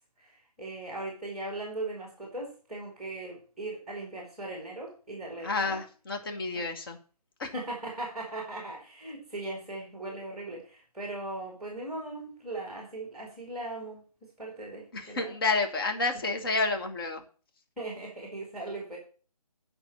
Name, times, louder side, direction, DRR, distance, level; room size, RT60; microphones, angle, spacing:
voice 1, 0.2-5.8 6.5-6.6 7.5-14.0 14.4-15.3 17.8-19.0, right 2 dB, ahead, -1 dB, 2.4 m, -39 dB
voice 2, 5.4-7.0 7.4-7.5 14.9-17.2, left 3 dB, 35° left, 4 dB, 1.5 m, -30 dB
8.8 x 5.5 x 7.3 m, 0.39 s
figure-of-eight pair, 155°, 20 cm